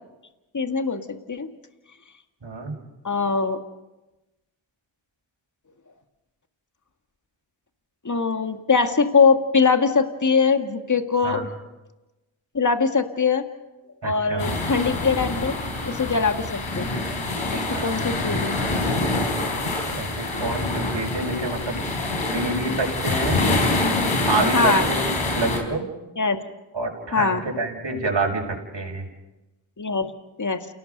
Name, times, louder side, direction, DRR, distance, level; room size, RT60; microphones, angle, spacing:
voice 1, 0.5-1.5 3.0-3.6 8.0-11.5 12.5-13.4 14.0-15.6 15.8-16.5 16.8-16.9 17.5-18.5 22.7-22.8 24.5-24.8 26.2-26.5 27.1-27.4 29.8-30.1 30.4-30.7, left 5 dB, 35° left, 6 dB, 2.0 m, -22 dB
voice 2, 2.4-2.7 11.2-11.4 14.0-14.5 17.2-18.0 19.6-21.7 22.3-23.4 24.2-25.8 26.7-29.1, right 2 dB, 60° right, -1 dB, 6.6 m, -28 dB
sound 1, 14.4-25.6, left 2 dB, 75° left, 4.5 m, -25 dB
29.0 x 18.0 x 5.4 m, 1.0 s
cardioid pair, 40°, 50 cm